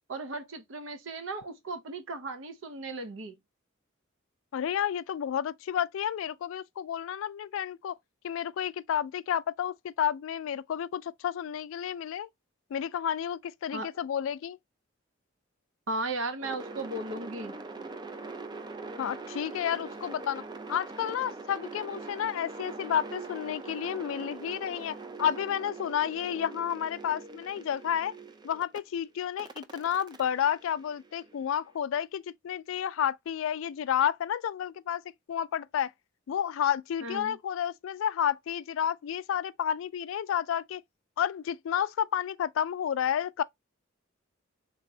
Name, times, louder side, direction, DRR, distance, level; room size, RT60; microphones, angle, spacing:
voice 1, 0.1-3.4 13.7-13.9 15.9-17.6 37.0-37.4, right 2 dB, 70° right, 0.7 m, -36 dB
voice 2, 4.5-8.0 8.2-12.3 12.7-14.6 19.0-20.4 20.7-28.1 28.4-35.0 35.3-35.9 36.3-40.8 41.2-43.4, left 9 dB, 70° left, 0.3 m, -31 dB
sound 1, 16.4-28.8 29.4-31.5, right 3 dB, 20° right, 0.3 m, -43 dB
3.4 x 2.9 x 2.7 m
head